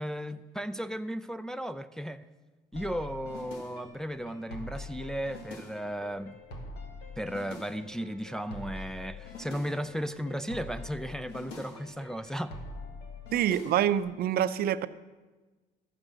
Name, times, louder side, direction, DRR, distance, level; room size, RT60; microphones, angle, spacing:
voice 1, 0.0-2.2 2.7-6.4 7.2-12.6, equal, 5° left, 0.4 m, -35 dB
sound 1, 2.7-14.0, left 2 dB, 85° left, 1.9 m, -44 dB
voice 2, 13.3-14.9, right 10 dB, 65° right, 0.5 m, -26 dB
12.5 x 7.8 x 6.1 m
cardioid pair, 110°, 17 cm